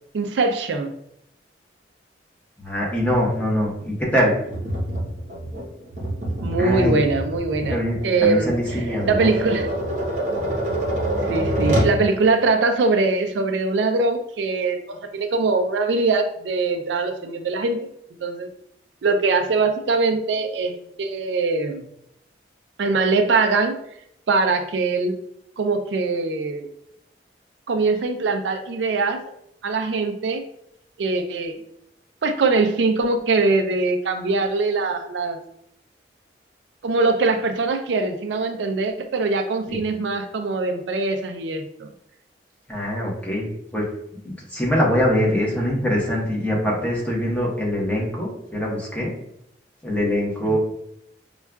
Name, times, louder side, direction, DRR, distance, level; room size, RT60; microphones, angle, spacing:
voice 1, 0.1-0.9 6.4-8.5 9.1-9.7 11.2-17.8 18.2-18.5 19.0-21.8 22.8-23.8 24.3-25.2 25.6-26.7 27.7-29.2 29.6-30.4 31.0-31.5 32.2-35.4 36.8-41.9 50.5-50.6, right 3 dB, 85° right, 6 dB, 0.4 m, -22 dB
voice 2, 2.6-4.4 6.6-7.0 7.7-9.3 10.3-10.4 39.7-39.8 42.7-43.8 44.1-49.1 49.8-50.6, equal, 10° left, -4 dB, 0.9 m, -23 dB
Tap, 4.5-12.0, right 1 dB, 45° right, 0.7 m, -26 dB
5.3 x 2.3 x 2.3 m, 0.75 s
head